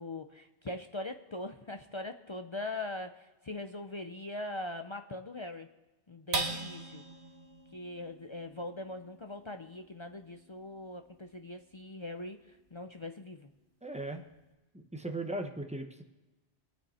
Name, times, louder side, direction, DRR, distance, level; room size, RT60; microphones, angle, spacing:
voice 1, 0.0-5.7 6.1-7.0 7.7-13.5, left 2 dB, 35° left, 6 dB, 0.5 m, -41 dB
sound 1, 6.3-13.0 13.5-13.6 14.0-14.5, right 3 dB, 50° right, 1.3 m, -42 dB
voice 2, 13.8-14.2 14.7-16.0, right 2 dB, 5° right, 4 dB, 0.9 m, -38 dB
24.5 x 9.0 x 4.2 m, 1.1 s
omnidirectional pair, 1.2 m